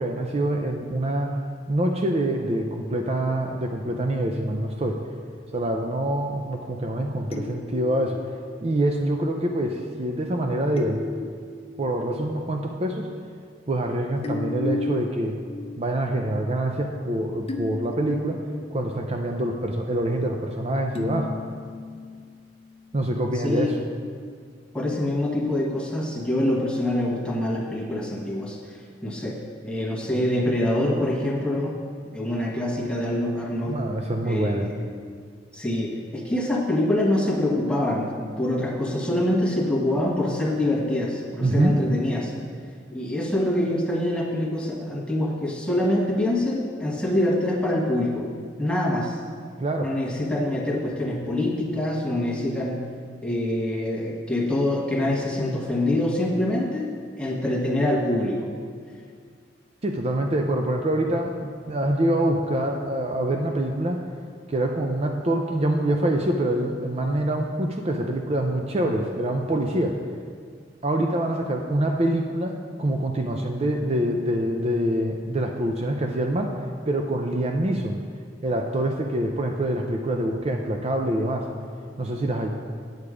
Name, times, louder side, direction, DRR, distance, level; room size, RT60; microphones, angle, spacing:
voice 1, 0.0-1.4 1.7-5.0 5.5-8.2 8.6-11.0 11.8-13.1 13.7-15.4 15.8-18.4 18.7-21.3 22.9-23.8 33.6-34.7 41.4-41.7 49.6-49.9 59.8-64.0 64.5-70.0 70.8-76.5 76.9-78.0 78.4-81.5 82.0-82.5, right 1 dB, 35° right, 2 dB, 0.5 m, -25 dB
sound 1, 7.3-9.0 10.8-12.0 12.6-12.7 14.2-15.9 16.3-16.4 17.5-18.8 21.0-22.2, left 2 dB, 35° left, 0.7 m, -34 dB
voice 2, 23.4-23.7 24.7-29.4 29.6-31.8 32.1-33.8 34.2-34.8 35.5-42.3 42.9-48.3 48.6-49.2 49.8-52.8 53.2-56.9 57.2-58.5, left 1 dB, 5° left, -3 dB, 1.3 m, -25 dB
8.8 x 8.1 x 4.9 m, 2.1 s
head